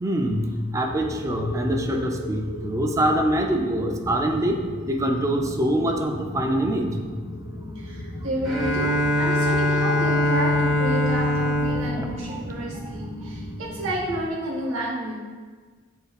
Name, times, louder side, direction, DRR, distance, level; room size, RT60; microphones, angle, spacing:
voice 1, 0.0-4.6 4.9-7.0 12.0-12.4, right 1 dB, 15° right, 3 dB, 0.3 m, -24 dB
sound 1, 0.8-14.2, left 1 dB, 50° left, 0.5 m, -36 dB
voice 2, 7.7-15.1, right 1 dB, 90° right, -4 dB, 0.9 m, -30 dB
Bowed string instrument, 8.4-13.2, left 1 dB, ahead, 0.9 m, -23 dB
6.6 x 2.6 x 2.3 m, 1.5 s
head